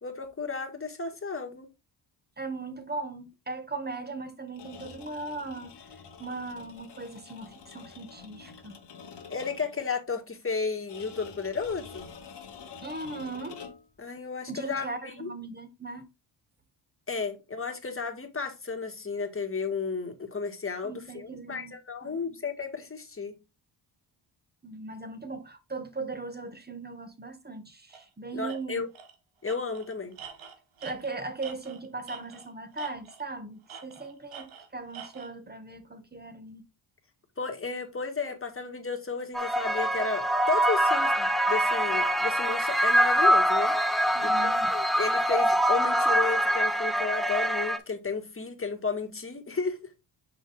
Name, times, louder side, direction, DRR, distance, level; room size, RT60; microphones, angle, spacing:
voice 1, 0.0-1.7 9.3-12.0 14.0-14.9 15.2-15.3 17.1-23.4 28.3-28.9 29.4-30.2 37.4-43.7 44.2-49.8, left 4 dB, 25° left, 1.8 m, -33 dB
voice 2, 2.4-5.7 6.2-8.8 12.8-13.6 14.5-16.1 20.8-21.7 22.0-22.3 24.6-28.9 30.8-36.6 44.1-44.7, right 3 dB, 20° right, 1.6 m, -38 dB
sound 1, 4.5-9.8 10.9-14.0, left 6 dB, 55° left, 1.4 m, -47 dB
Tools, 27.9-28.1 28.5-28.6 28.9-29.1 29.4-32.5 32.8-33.3 33.7-35.3, right 7 dB, 70° right, 1.3 m, -46 dB
sound 2, 39.3-47.8, equal, ahead, 0.8 m, -24 dB
6.2 x 4.9 x 3.5 m
cardioid pair, 65°, 49 cm